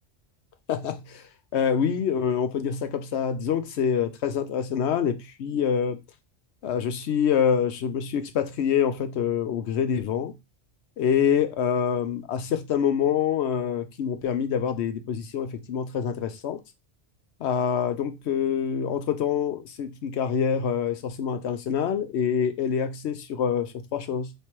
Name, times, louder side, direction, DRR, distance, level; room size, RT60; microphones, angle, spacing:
voice 1, 0.7-6.0 6.6-10.3 11.0-16.6 17.4-24.3, left 7 dB, 70° left, 0.9 m, -26 dB
3.3 x 3.1 x 4.3 m
omnidirectional pair, 1.2 m